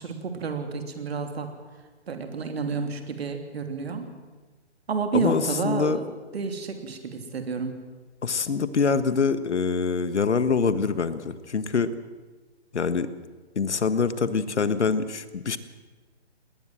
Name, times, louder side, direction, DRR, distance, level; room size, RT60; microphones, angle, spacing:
voice 1, 0.0-1.5 2.1-4.1 4.9-6.0 6.3-7.7, right 4 dB, 60° right, 6 dB, 3.2 m, -30 dB
voice 2, 5.1-6.0 8.2-11.9 12.7-13.1 13.5-15.6, left 5 dB, 80° left, 13 dB, 1.5 m, -25 dB
20.0 x 19.5 x 7.6 m, 1.3 s
hypercardioid pair, 150°, 34 cm